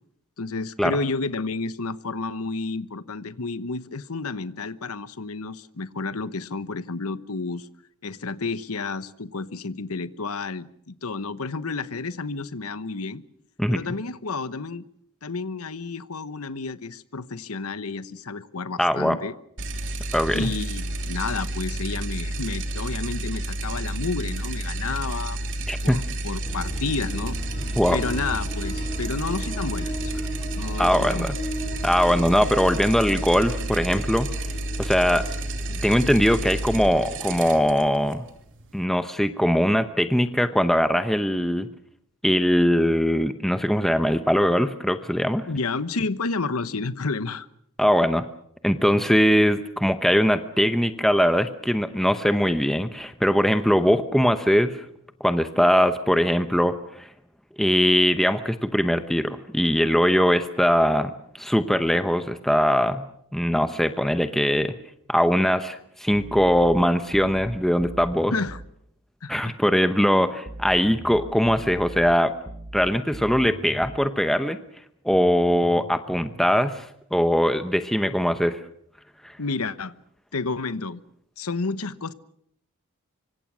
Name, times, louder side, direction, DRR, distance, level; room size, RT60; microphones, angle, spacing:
voice 1, 0.4-7.7 8.0-13.2 13.7-14.8 15.2-19.3 20.3-25.4 25.8-27.4 27.9-30.3 30.6-31.3 45.5-47.5 68.3-68.6 69.2-69.5 79.4-79.9 80.3-81.0 81.4-82.1, left 3 dB, 70° left, 15 dB, 1.1 m, -31 dB
voice 2, 18.8-19.2 20.1-20.5 25.7-26.0 27.8-28.0 30.8-31.4 31.8-34.5 34.8-35.3 35.8-38.3 38.7-41.7 42.2-45.5 47.8-48.2 48.6-54.9 55.2-57.1 57.6-63.1 63.3-64.7 65.1-68.3 69.3-72.3 72.7-74.6 75.0-78.6 79.2-79.4, equal, ahead, 9 dB, 0.8 m, -21 dB
sound 1, 19.6-38.9, right 1 dB, 60° right, 2.8 m, -31 dB
sound 2, 26.4-36.7, equal, 30° left, 4.3 m, -37 dB
sound 3, 66.1-68.7 70.5-74.1 75.1-76.8, right 1 dB, 25° right, 1.1 m, -40 dB
25.5 x 24.5 x 6.2 m, 0.70 s
head